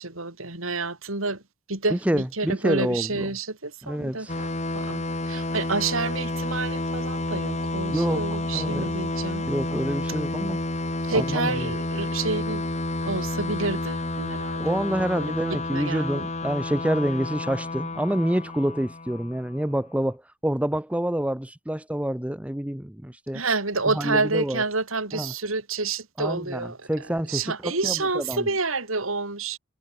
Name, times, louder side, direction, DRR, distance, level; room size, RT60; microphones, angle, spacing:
voice 1, 0.0-1.4 1.7-9.5 11.1-12.7 13.0-16.2 23.3-26.9 27.3-29.6, right 3 dB, 80° right, 4.2 m, -29 dB
voice 2, 1.9-3.3 3.8-4.5 7.9-8.9 9.5-10.6 11.1-11.7 14.6-23.4 23.8-24.6 25.1-25.3 26.2-28.5, right 1 dB, 5° right, 0.7 m, -27 dB
sound 1, 4.3-19.7, left 2 dB, 35° left, 2.9 m, -30 dB
head